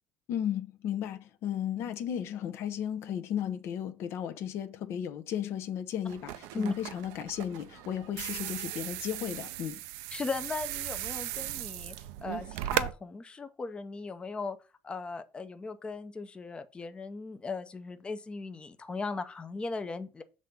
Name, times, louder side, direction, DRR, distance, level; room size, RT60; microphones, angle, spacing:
voice 1, 0.3-9.8, left 9 dB, 65° left, 0.6 m, -35 dB
sound 1, 6.1-12.9, right 14 dB, 85° right, 0.4 m, -37 dB
voice 2, 10.1-11.9 12.2-14.6 14.8-20.2, left 3 dB, 20° left, 0.5 m, -37 dB
6.2 x 3.3 x 5.2 m
cardioid pair, 105°, 5 cm